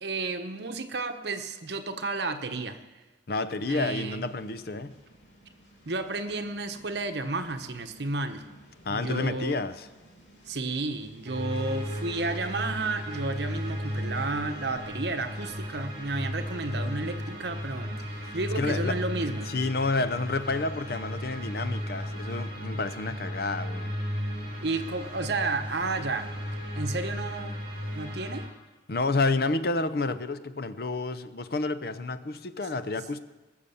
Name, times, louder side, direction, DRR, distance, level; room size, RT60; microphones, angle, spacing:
voice 1, 0.0-2.9 3.7-4.2 5.9-8.4 8.9-9.6 10.5-19.5 24.6-26.3 26.7-27.6 27.9-28.5, right 3 dB, 65° right, 1.0 m, -32 dB
voice 2, 3.3-5.0 8.8-9.9 18.2-19.0 19.5-23.9 28.9-33.2, left 3 dB, 55° left, 0.6 m, -30 dB
sound 1, 4.1-22.4, equal, 80° left, 2.9 m, -56 dB
sound 2, 11.2-28.5, equal, 30° right, 3.5 m, -35 dB
20.5 x 6.9 x 7.0 m
head